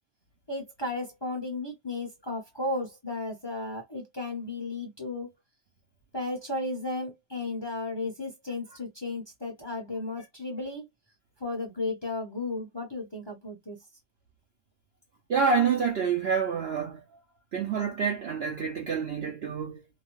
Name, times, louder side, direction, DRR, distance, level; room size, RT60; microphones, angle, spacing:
voice 1, 0.5-5.3 6.1-10.8 11.4-13.8, left 2 dB, 25° left, 0.5 m, -34 dB
voice 2, 15.3-17.2 17.5-19.8, right 6 dB, 90° right, 0.5 m, -27 dB
2.7 x 2.1 x 3.0 m
omnidirectional pair, 1.8 m